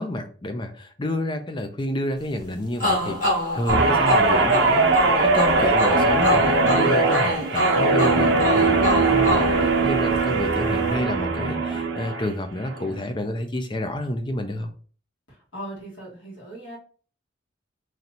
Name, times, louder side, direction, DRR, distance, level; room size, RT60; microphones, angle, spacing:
voice 1, 0.0-14.7, left 1 dB, 25° left, 7 dB, 0.5 m, -29 dB
sound 1, 2.8-10.4, equal, 40° left, 1.7 m, -26 dB
Guitar, 3.7-12.3 12.7-13.0, right 3 dB, 65° right, 1.0 m, -20 dB
voice 2, 15.5-16.8, right 1 dB, 65° left, -6 dB, 2.1 m, -38 dB
4.0 x 3.2 x 2.8 m, 0.40 s
head